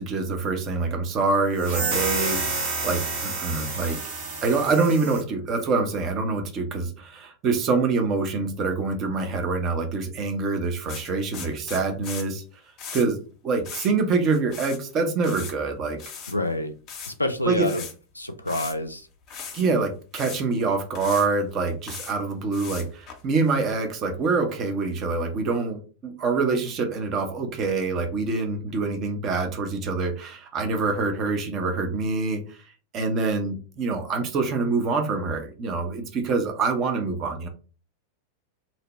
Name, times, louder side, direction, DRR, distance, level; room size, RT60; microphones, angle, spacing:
voice 1, 0.0-4.0 4.4-12.4 12.9-16.0 17.4-17.7 19.5-32.6 32.9-37.5, right 4 dB, 35° right, 5 dB, 0.6 m, -25 dB
sound 1, 1.6-5.2, right 3 dB, 50° right, 1.0 m, -29 dB
sound 2, 10.9-12.3 12.8-13.1 13.6-13.9 14.1-14.8 15.0-15.5 16.0-16.4 16.9-17.1 17.6-17.9 18.5-18.9 19.3-19.6 20.1-20.4 20.9-21.3 21.7-22.1 22.5-23.6, left 6 dB, 35° left, 0.6 m, -38 dB
voice 2, 16.3-16.7 17.1-17.8 18.1-19.1, left 1 dB, 85° left, 8 dB, 0.3 m, -27 dB
2.7 x 2.1 x 3.0 m, 0.37 s
figure-of-eight pair, 90°, 0 cm